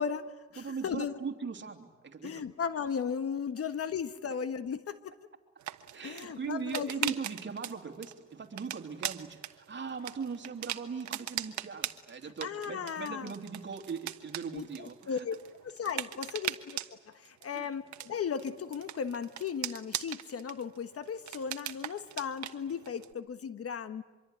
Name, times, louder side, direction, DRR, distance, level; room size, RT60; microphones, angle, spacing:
voice 1, 0.0-1.2 2.2-5.1 6.0-7.1 12.4-13.3 14.5-14.7 15.1-15.4 15.6-16.8 17.1-24.0, left 7 dB, 50° left, 11 dB, 1.3 m, -36 dB
voice 2, 0.6-2.4 5.9-15.3 17.5-17.8, right 5 dB, 40° right, 4 dB, 3.1 m, -40 dB
sound 1, 5.6-23.1, right 12 dB, 70° right, 1.3 m, -41 dB
25.0 x 23.5 x 9.4 m, 1.2 s
cardioid pair, 90°, 30 cm